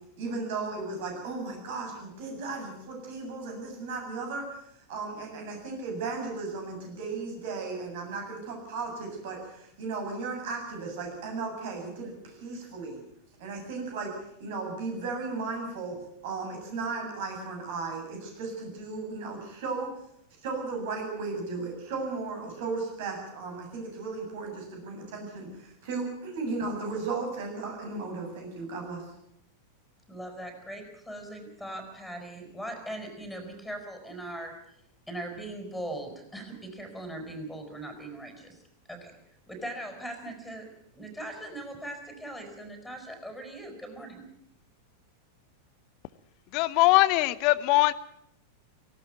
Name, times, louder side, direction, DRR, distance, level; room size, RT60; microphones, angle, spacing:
voice 1, 0.2-4.6 4.9-13.0 13.4-14.1 14.4-16.0 16.2-19.9 20.4-29.0, right 4 dB, 50° right, 2 dB, 7.5 m, -35 dB
voice 2, 30.1-34.5 35.1-38.6 38.9-39.1 39.5-40.7 40.9-44.3, right 1 dB, ahead, 4 dB, 5.3 m, -40 dB
voice 3, 46.5-47.9, left 19 dB, 45° left, 18 dB, 0.9 m, -21 dB
18.0 x 16.5 x 9.1 m, 0.76 s
figure-of-eight pair, 90°, 0 cm